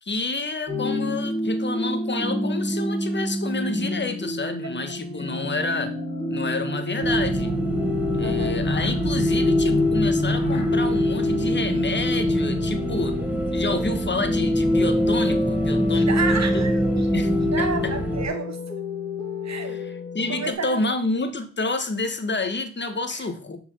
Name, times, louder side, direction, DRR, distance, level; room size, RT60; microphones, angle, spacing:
voice 1, 0.0-6.0 6.3-7.5 8.2-13.2 13.5-16.7 17.1-17.3 17.6-17.9 19.6-23.6, left 3 dB, 30° left, 9 dB, 1.5 m, -29 dB
sound 1, 0.7-20.5, left 1 dB, 10° left, 2.3 m, -29 dB
sound 2, 5.0-14.1, left 3 dB, 80° left, 2.5 m, -36 dB
sound 3, 7.0-18.3, left 1 dB, 5° right, 1.8 m, -24 dB
voice 2, 8.2-8.6 12.9-13.2 16.1-17.1 17.5-18.6 19.4-19.8 20.3-20.8 23.1-23.2, right 5 dB, 45° right, 6 dB, 1.8 m, -31 dB
6.4 x 4.7 x 5.6 m, 0.41 s
supercardioid pair, 60°, 37 cm